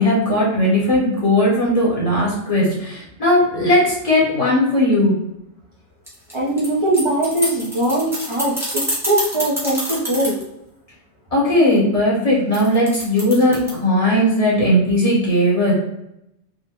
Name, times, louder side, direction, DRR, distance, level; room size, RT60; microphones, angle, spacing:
voice 1, 0.0-5.2 11.3-15.7, left 1 dB, 30° left, -6 dB, 1.0 m, -17 dB
sound 1, 6.1-10.4 12.5-13.7, equal, ahead, 0.8 m, -26 dB
voice 2, 6.3-10.4, right 1 dB, 40° right, -6 dB, 0.4 m, -21 dB
3.9 x 2.0 x 2.9 m, 0.82 s
omnidirectional pair, 1.2 m